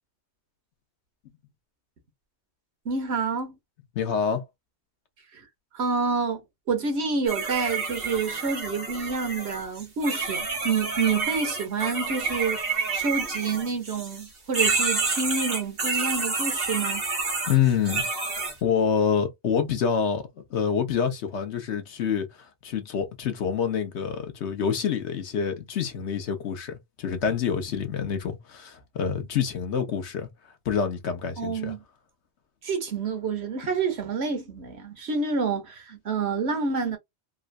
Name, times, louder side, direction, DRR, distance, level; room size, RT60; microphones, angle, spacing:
voice 1, 2.8-3.6 5.3-5.4 5.7-12.6 12.9-17.0 31.4-31.8 32.6-37.0, right 4 dB, 75° right, 1.3 m, -28 dB
voice 2, 3.9-4.4 17.5-18.1 18.6-20.2 20.5-30.3 30.6-31.7, left 7 dB, 85° left, 1.1 m, -27 dB
sound 1, 7.3-14.3 14.5-18.5, right 4 dB, 60° right, 1.4 m, -29 dB
3.8 x 2.1 x 2.3 m
omnidirectional pair, 1.1 m